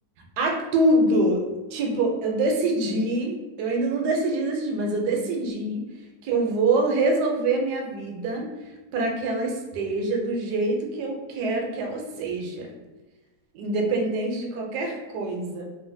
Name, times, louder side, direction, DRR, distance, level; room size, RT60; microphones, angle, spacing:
voice 1, 0.4-1.4 1.7-5.8 6.2-8.5 8.9-12.7 13.5-15.7, right 2 dB, 75° right, 1 dB, 1.1 m, -25 dB
3.1 x 2.4 x 2.6 m, 1.1 s
omnidirectional pair, 1.8 m